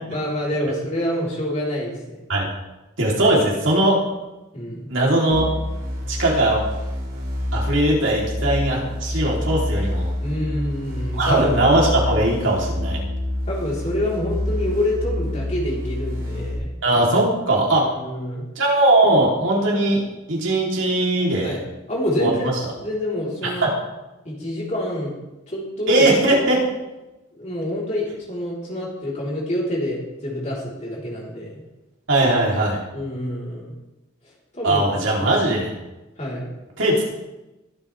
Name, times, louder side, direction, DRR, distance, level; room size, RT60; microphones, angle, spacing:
voice 1, 0.1-2.2 4.5-4.9 10.2-11.7 13.5-16.7 17.8-18.5 21.4-21.6 21.9-23.7 24.2-25.2 25.5-26.1 27.3-31.6 32.9-33.8 34.5-34.9 35.2-35.3 36.2-36.4, left 1 dB, 35° left, -5 dB, 4.0 m, -27 dB
voice 2, 3.0-4.0 4.9-5.5 6.1-6.6 7.5-10.1 11.2-13.0 16.8-17.9 18.6-20.0 20.3-21.6 22.2-22.3 23.4-23.7 25.9-26.6 32.1-32.8 34.6-35.7 36.8-37.0, right 1 dB, 65° right, -3 dB, 3.5 m, -19 dB
sound 1, 5.3-16.6, left 1 dB, 90° right, 5.4 m, -27 dB
22.5 x 8.3 x 3.5 m, 1.0 s
head